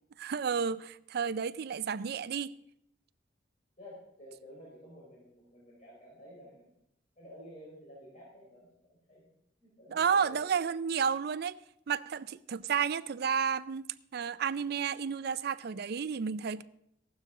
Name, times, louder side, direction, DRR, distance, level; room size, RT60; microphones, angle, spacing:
voice 1, 0.2-2.5 9.9-11.6 11.9-13.8 14.1-16.6, right 6 dB, 60° right, 0.4 m, -31 dB
voice 2, 3.8-6.7 7.2-9.3 9.6-10.7, equal, 40° left, 4.5 m, -52 dB
15.0 x 12.0 x 3.7 m
head